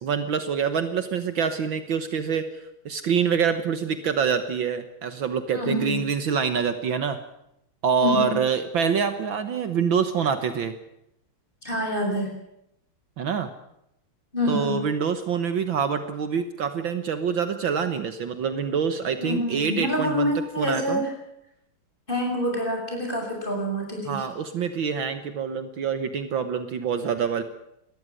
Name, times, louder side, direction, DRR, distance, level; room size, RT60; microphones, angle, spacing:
voice 1, 0.0-2.5 2.9-7.2 7.8-10.7 13.2-13.5 14.5-20.3 20.6-21.0 24.1-27.4, right 6 dB, 65° right, 9 dB, 1.9 m, -26 dB
voice 2, 5.5-6.0 8.0-8.4 11.6-12.3 14.3-14.8 19.2-21.1 22.1-24.2, left 1 dB, 20° left, 1 dB, 6.7 m, -27 dB
19.0 x 14.0 x 9.8 m, 0.80 s
omnidirectional pair, 2.4 m